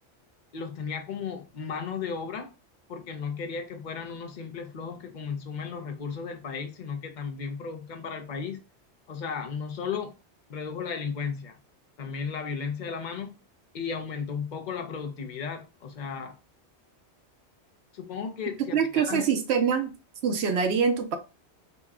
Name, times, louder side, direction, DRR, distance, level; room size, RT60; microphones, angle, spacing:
voice 1, 0.5-2.5 2.9-8.6 9.1-10.1 10.5-11.6 12.0-13.4 13.7-16.4 17.9-19.3, left 6 dB, 50° left, 0.8 m, -35 dB
voice 2, 18.7-19.9 20.2-21.2, right 6 dB, 70° right, 0.9 m, -24 dB
4.0 x 2.2 x 3.5 m
omnidirectional pair, 1.1 m